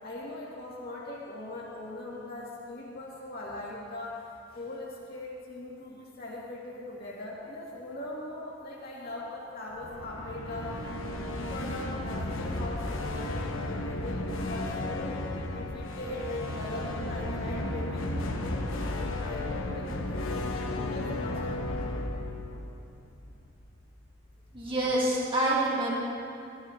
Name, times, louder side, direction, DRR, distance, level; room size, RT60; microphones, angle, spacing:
voice 1, 0.0-10.8 11.1-15.2 15.5-21.9, left 1 dB, 50° left, -5 dB, 2.6 m, -40 dB
sound 1, 9.7-23.7, left 1 dB, 85° left, 1.0 m, -34 dB
voice 2, 24.5-25.9, right 1 dB, 25° right, -5 dB, 2.0 m, -26 dB
16.5 x 13.0 x 3.0 m, 2.6 s
head